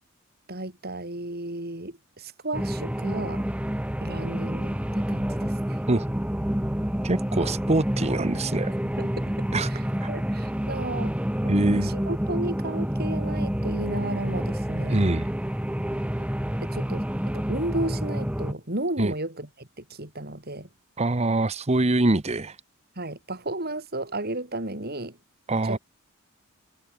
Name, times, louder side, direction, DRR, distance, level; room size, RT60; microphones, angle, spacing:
voice 1, 0.5-3.5 4.0-5.8 9.0-9.1 10.1-11.2 11.4-15.0 16.6-17.1 17.3-20.7 23.0-25.2 25.7-25.8, right 1 dB, 45° right, 5.5 m, -33 dB
sound 1, 2.5-18.5, equal, 5° right, 0.9 m, -28 dB
voice 2, 7.0-8.7 9.5-9.7 10.0-10.1 11.5-11.9 14.9-15.3 19.0-19.1 21.0-22.6 25.5-25.8, right 2 dB, 30° right, 1.0 m, -24 dB
head